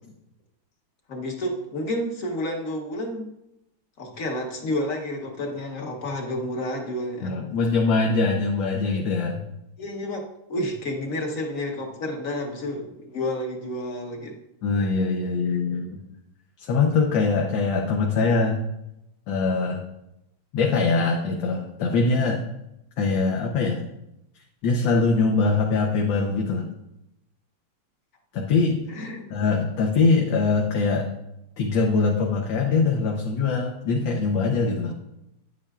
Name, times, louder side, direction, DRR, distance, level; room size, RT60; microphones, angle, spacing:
voice 1, 1.1-3.3 4.0-7.4 9.8-10.2 10.5-14.3 28.9-29.2 34.8-34.9, left 1 dB, 50° left, 2 dB, 1.3 m, -30 dB
voice 2, 7.2-9.4 14.6-16.0 16.6-18.6 19.3-19.8 20.5-22.4 23.0-23.8 24.6-26.7 28.3-28.8 29.3-31.1 31.6-34.9, left 4 dB, 75° left, 0 dB, 1.6 m, -22 dB
9.9 x 8.8 x 2.4 m, 0.86 s
omnidirectional pair, 2.1 m